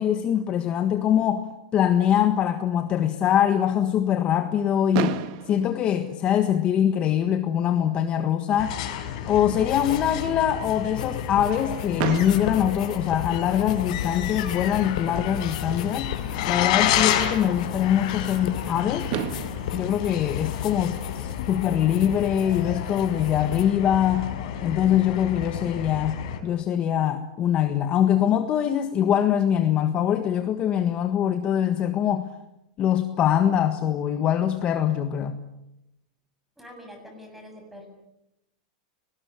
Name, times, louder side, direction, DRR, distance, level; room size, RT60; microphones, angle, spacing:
voice 1, 0.0-5.2 5.5-8.8 9.3-16.1 16.5-19.1 19.7-24.3 24.6-32.3 32.8-35.4, left 10 dB, 25° left, 1.6 m, -23 dB
Fireworks, 4.9-7.0 7.8-7.9 8.1-8.3 8.6-8.7 12.0-13.8 15.5-15.6 18.6-18.7 19.1-21.4, right 12 dB, 45° right, 1.8 m, -34 dB
sound 1, 8.6-26.4, left 10 dB, 55° left, 4.4 m, -30 dB
sound 2, 9.6-10.3 10.5-23.6, left 9 dB, 80° left, 3.6 m, -38 dB
voice 2, 36.6-37.9, equal, 5° right, 7.1 m, -44 dB
30.0 x 19.5 x 8.5 m
supercardioid pair, 160°, 4 cm